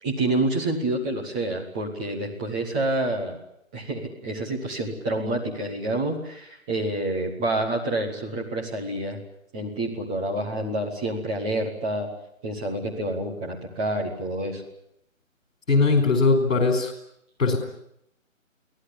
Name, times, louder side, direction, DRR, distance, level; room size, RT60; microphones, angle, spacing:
voice 1, 0.0-3.4 3.7-9.2 9.5-12.1 12.4-14.6, right 1 dB, 5° right, -2 dB, 0.9 m, -28 dB
voice 2, 15.7-16.9 17.4-17.6, left 4 dB, 65° left, 5 dB, 4.8 m, -20 dB
23.5 x 17.0 x 9.8 m, 0.77 s
figure-of-eight pair, 160°, 41 cm